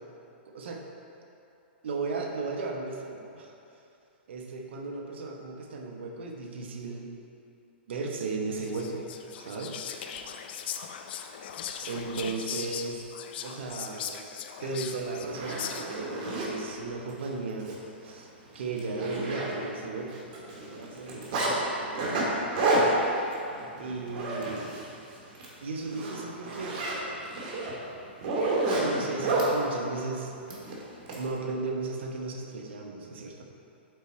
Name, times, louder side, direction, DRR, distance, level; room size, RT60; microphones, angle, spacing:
voice 1, 1.8-3.5 4.3-7.1 7.9-9.1 9.4-9.8 11.8-13.0 13.4-14.2 14.6-17.7 18.0-18.3 18.5-21.5 21.8-22.2 22.8-22.9 23.8-24.8 25.6-26.8 28.8-30.3 31.2-33.4, right 3 dB, 75° right, 1 dB, 1.0 m, -35 dB
Whispering, 8.6-16.1, left 8 dB, 60° left, 0.5 m, -39 dB
Zipper (clothing), 14.7-14.8 15.2-16.5 17.1-17.3 17.6-17.7 18.1-18.2 18.5-19.9 20.1-21.5 22.0-24.9 25.2-25.5 25.9-29.5 30.5-31.2, right 2 dB, 50° right, 1.7 m, -30 dB
8.1 x 4.2 x 4.6 m, 2.7 s
hypercardioid pair, 135°, 6 cm